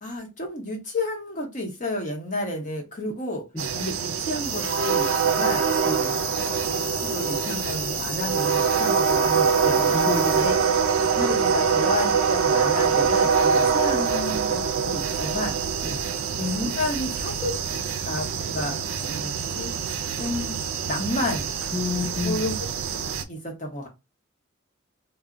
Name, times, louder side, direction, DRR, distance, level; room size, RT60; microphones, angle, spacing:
voice 1, 0.0-3.4 3.7-5.7 6.7-10.0 10.4-10.6 11.1-15.6 16.4-17.6 18.1-19.7 20.2-20.6 20.9-21.5 22.2-23.0 23.3-23.9, left 1 dB, 40° left, 1 dB, 0.9 m, -31 dB
sound 1, 3.6-23.2, right 6 dB, 80° right, 0.4 m, -24 dB
sound 2, 4.3-10.8, left 9 dB, 85° left, 0.5 m, -37 dB
voice 2, 9.9-10.5 13.5-13.7 15.8-16.0 21.7-22.4, left 2 dB, 10° left, -1 dB, 0.3 m, -29 dB
2.1 x 2.0 x 3.7 m, 0.25 s
head